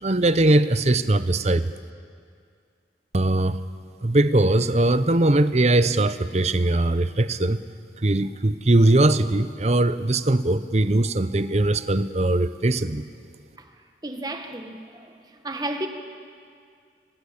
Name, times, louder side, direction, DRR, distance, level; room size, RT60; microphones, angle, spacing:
voice 1, 0.0-1.7 3.1-3.6 4.0-7.6 8.0-13.0, right 2 dB, 40° right, 0.8 m, -20 dB
voice 2, 14.0-15.1 15.4-15.9, right 1 dB, 20° right, 1.7 m, -32 dB
24.5 x 21.5 x 8.6 m
head